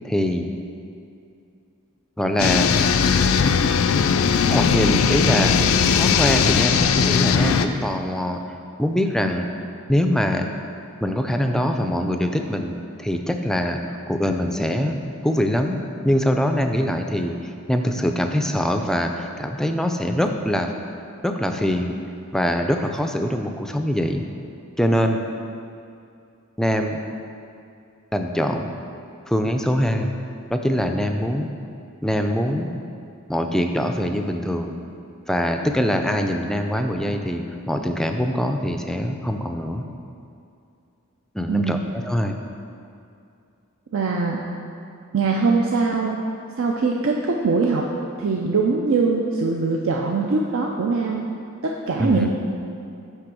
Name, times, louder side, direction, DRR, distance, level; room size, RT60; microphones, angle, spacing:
voice 1, 0.0-0.5 2.2-2.7 4.5-5.6 5.9-8.4 8.8-9.5 9.9-10.5 11.0-12.7 13.0-13.8 14.1-14.9 15.2-15.8 16.0-20.7 21.2-21.9 22.3-24.2 24.8-25.2 26.6-27.0 28.1-28.7 29.3-30.1 30.5-31.5 32.0-32.7 33.3-34.8 35.3-39.8 41.3-42.4 52.0-52.3, equal, 5° left, 4 dB, 0.4 m, -23 dB
sound 1, 2.4-7.7, left 6 dB, 70° left, 0.4 m, -19 dB
voice 2, 41.5-41.8 43.9-44.4 45.1-46.2 46.6-47.8 48.2-51.3 51.6-52.3, right 4 dB, 65° right, 0 dB, 0.5 m, -22 dB
9.9 x 3.4 x 6.0 m, 2.5 s
head